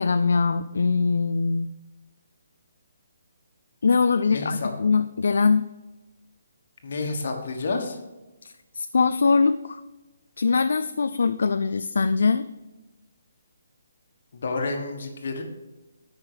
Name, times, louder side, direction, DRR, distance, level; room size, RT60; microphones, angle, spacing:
voice 1, 0.0-1.7 3.8-5.7 8.4-9.8 10.4-12.5, left 4 dB, 70° left, 10 dB, 0.4 m, -22 dB
voice 2, 4.3-4.7 6.8-8.0 14.4-15.4, left 3 dB, 50° left, 4 dB, 1.4 m, -29 dB
8.8 x 5.7 x 5.0 m, 1.1 s
hypercardioid pair, 175°, 0 cm